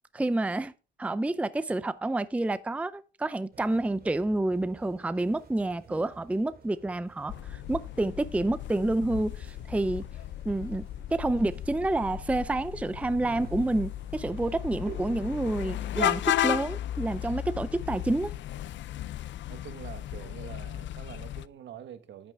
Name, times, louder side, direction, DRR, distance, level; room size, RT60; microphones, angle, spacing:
voice 1, 0.1-0.7 1.0-10.1 10.4-10.9 11.1-18.3, right 2 dB, 5° right, 0.5 m, -29 dB
sound 1, 3.5-16.0, right 5 dB, 50° right, 3.2 m, -51 dB
sound 2, 7.3-21.5, left 13 dB, 70° left, 0.5 m, -35 dB
voice 2, 19.5-22.3, right 9 dB, 65° right, 1.4 m, -45 dB
10.5 x 8.9 x 3.5 m
cardioid pair, 90°, 20 cm